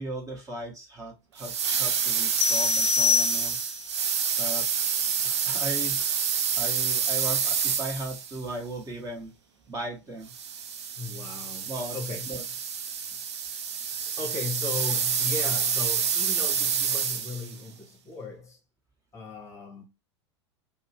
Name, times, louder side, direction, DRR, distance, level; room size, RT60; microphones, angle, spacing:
voice 1, 0.0-3.7 4.4-4.7 5.2-6.0 6.5-9.3 9.7-10.3 11.6-12.0 12.2-12.4, right 1 dB, 25° right, 1.1 m, -37 dB
sound 1, 1.4-8.4 10.3-17.5, right 7 dB, 80° right, 0.5 m, -28 dB
sound 2, 2.4-3.9, left 9 dB, 45° left, 0.5 m, -25 dB
voice 2, 11.0-12.3 13.9-18.6 19.1-19.8, left 3 dB, 20° left, 0.9 m, -37 dB
2.8 x 2.1 x 2.8 m
hypercardioid pair, 95°, 14 cm